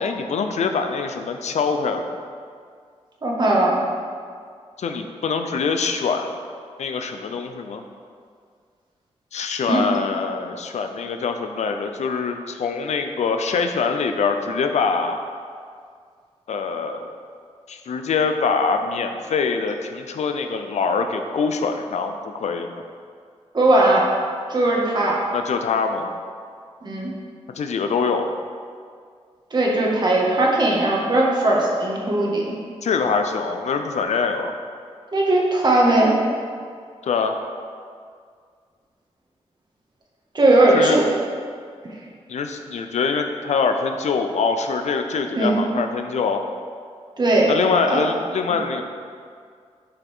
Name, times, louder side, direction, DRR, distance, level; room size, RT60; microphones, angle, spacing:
voice 1, 0.0-2.2 4.8-6.3 6.8-7.8 9.3-15.2 16.5-17.1 17.7-22.7 25.3-26.1 27.6-28.3 32.8-34.6 37.0-37.4 40.7-41.0 42.3-46.4 47.5-48.8, left 5 dB, 85° left, 6 dB, 0.7 m, -24 dB
voice 2, 3.2-3.8 9.7-9.8 23.5-24.1 24.5-25.2 26.8-27.1 29.5-32.5 35.1-36.1 40.3-41.0 45.3-45.6 47.2-47.5 47.9-48.0, right 2 dB, 40° right, -3 dB, 1.9 m, -18 dB
11.5 x 5.9 x 3.7 m, 2.1 s
wide cardioid pair, 90°, 11 cm